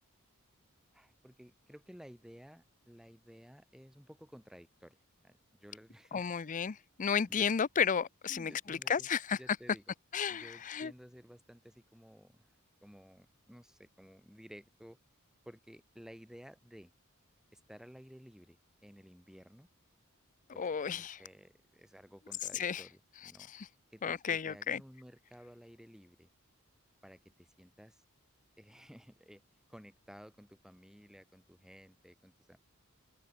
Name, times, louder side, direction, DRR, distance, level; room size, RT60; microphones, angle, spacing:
voice 1, 0.9-5.0 5.2-6.2 7.3-7.5 8.3-9.1 9.4-9.8 10.3-12.5 12.8-15.0 15.5-16.9 17.5-19.7 20.5-23.5 23.9-26.3 27.0-28.0 28.6-29.4 29.7-32.6, equal, 5° right, 5.5 m, -55 dB
voice 2, 6.1-9.4 10.1-10.9 20.6-21.2 22.5-22.8 23.5-23.7 24.0-24.8, left 7 dB, 35° left, 0.5 m, -33 dB
head